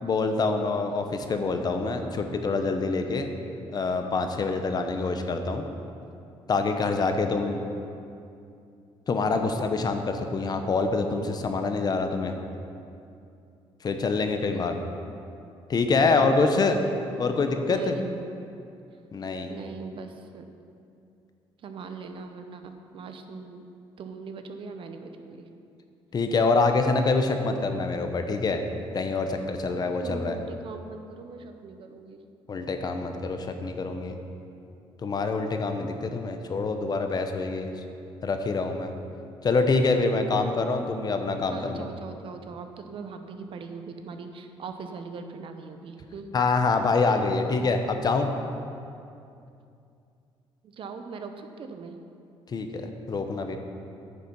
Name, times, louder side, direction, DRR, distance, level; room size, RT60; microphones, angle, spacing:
voice 1, 0.0-3.3 3.7-5.6 6.5-7.6 9.1-12.3 13.8-14.8 15.7-16.8 17.2-18.0 19.1-19.5 26.1-28.6 28.9-30.3 32.5-34.2 35.0-37.7 38.2-38.9 39.4-41.9 46.3-48.3 52.5-53.6, left 3 dB, 40° left, 6 dB, 0.8 m, -25 dB
voice 2, 17.6-18.3 19.5-20.5 21.6-23.6 24.0-25.5 29.7-32.2 41.5-46.3 50.6-52.0, right 4 dB, 55° right, 7 dB, 0.8 m, -40 dB
9.4 x 6.7 x 5.3 m, 2.6 s
cardioid pair, 95°, 10 cm